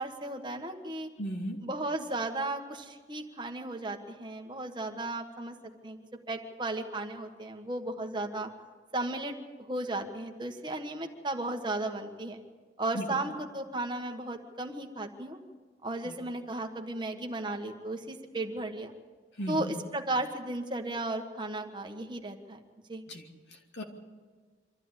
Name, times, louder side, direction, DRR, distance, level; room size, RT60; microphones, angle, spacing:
voice 1, 0.0-1.1 1.6-5.5 5.8-6.0 6.3-8.5 8.9-12.4 12.8-15.4 15.8-18.9 19.5-22.6 22.9-23.0, right 2 dB, 25° right, 3 dB, 1.4 m, -35 dB
voice 2, 1.2-1.6 12.9-13.2 16.0-16.1 19.4-19.7 23.1-23.8, equal, 85° left, 2 dB, 2.6 m, -37 dB
24.5 x 13.5 x 8.2 m, 1.5 s
head